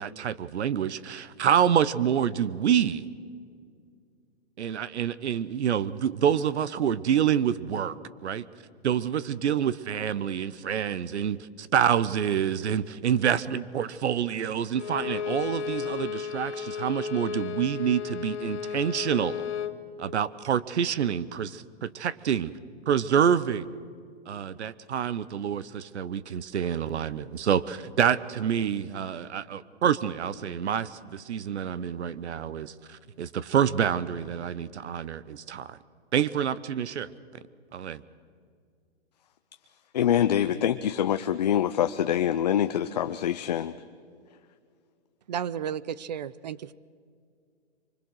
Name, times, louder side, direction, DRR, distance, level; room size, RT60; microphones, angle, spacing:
voice 1, 0.0-3.1 4.6-8.0 8.2-8.5 8.8-19.4 20.0-22.5 22.9-23.7 24.3-35.8 36.1-37.1 37.7-38.0, right 8 dB, 80° right, 17 dB, 0.9 m, -27 dB
Bowed string instrument, 14.7-19.8, left 7 dB, 80° left, 1.4 m, -33 dB
voice 2, 39.9-43.7, left 10 dB, 40° left, 10 dB, 0.5 m, -25 dB
voice 3, 45.3-46.6, right 8 dB, 40° right, 20 dB, 0.4 m, -32 dB
24.0 x 21.0 x 6.4 m, 2.2 s
hypercardioid pair, 160°, 34 cm